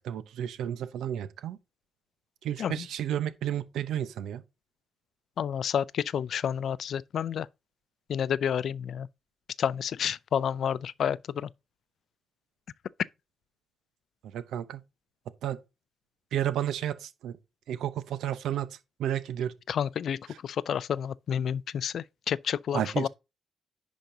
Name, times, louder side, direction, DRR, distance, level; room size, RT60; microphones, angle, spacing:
voice 1, 0.0-1.6 2.4-4.4 14.3-14.8 15.4-15.6 16.3-17.4 17.7-19.6 22.7-23.1, right 11 dB, 85° right, 0.8 m, -32 dB
voice 2, 5.4-7.5 8.1-9.1 9.6-11.5 19.7-23.1, left 8 dB, 65° left, 0.3 m, -30 dB
10.5 x 5.1 x 2.7 m
cardioid pair, 95°, 0 cm